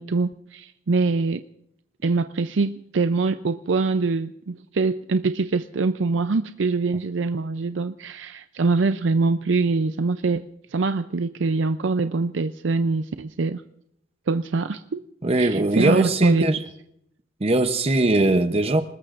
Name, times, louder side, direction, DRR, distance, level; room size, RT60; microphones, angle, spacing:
voice 1, 0.0-1.4 2.0-13.6 14.3-15.0 15.4-16.4, right 3 dB, 75° right, 10 dB, 0.5 m, -24 dB
voice 2, 15.2-16.6 17.4-18.8, right 2 dB, 30° right, 8 dB, 0.8 m, -20 dB
27.0 x 20.0 x 2.5 m, 0.75 s
head